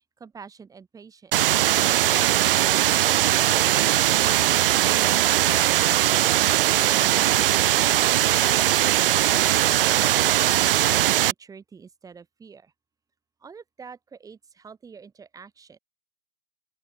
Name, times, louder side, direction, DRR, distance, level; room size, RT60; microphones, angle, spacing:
voice 1, 0.0-1.5 2.0-3.3 9.7-12.7 13.4-15.8, right 5 dB, 10° right, 3.2 m, -46 dB
sound 1, 1.3-11.3, right 13 dB, 55° right, 1.0 m, -20 dB
open air
hypercardioid pair, 140°, 33 cm